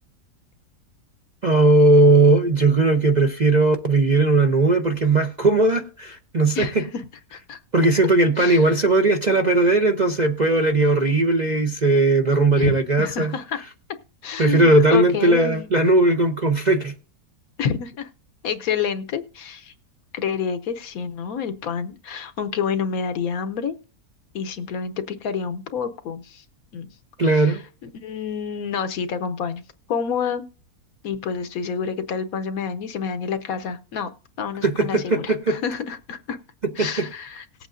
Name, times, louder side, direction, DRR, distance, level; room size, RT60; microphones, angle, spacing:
voice 1, 1.4-6.7 7.7-13.3 14.4-16.9 27.2-27.6 34.6-35.6 36.8-36.9, right 2 dB, 40° right, 0.7 m, -18 dB
voice 2, 6.5-7.0 7.3-7.6 8.4-8.7 12.6-13.6 14.2-15.7 17.6-18.1 18.4-19.7 20.1-23.7 24.3-26.4 26.7-26.9 27.2-29.6 29.9-30.5 31.0-34.1 34.4-36.4 36.7-37.4, left 6 dB, 65° left, 1.1 m, -28 dB
18.5 x 8.2 x 2.5 m
omnidirectional pair, 1.7 m